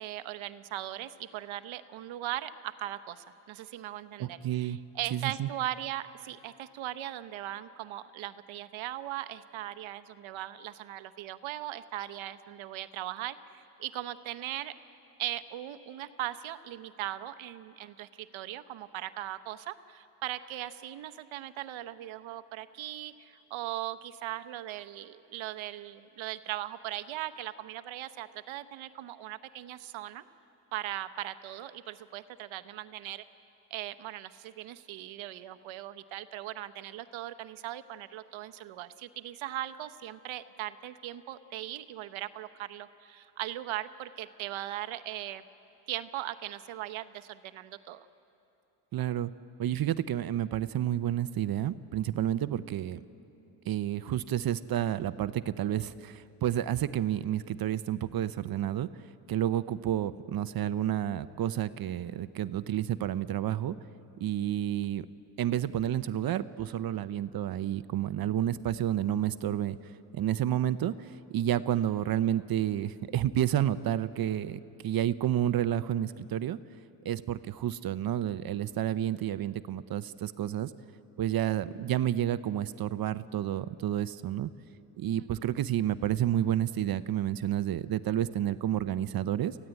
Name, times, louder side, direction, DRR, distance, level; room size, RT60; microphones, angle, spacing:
voice 1, 0.0-14.7 15.2-30.2 30.7-33.2 33.7-45.4 45.9-48.1 85.2-85.3, right 13 dB, 90° right, 11 dB, 1.0 m, -39 dB
voice 2, 4.2-4.8 5.1-5.5 48.9-49.3 49.6-53.0 53.7-58.9 59.3-63.7 64.2-65.1 65.4-69.8 70.1-76.6 77.0-80.7 81.2-84.5 85.0-89.6, right 11 dB, 50° right, 14 dB, 0.7 m, -30 dB
28.5 x 15.5 x 9.0 m, 2.8 s
cardioid pair, 140°, 46 cm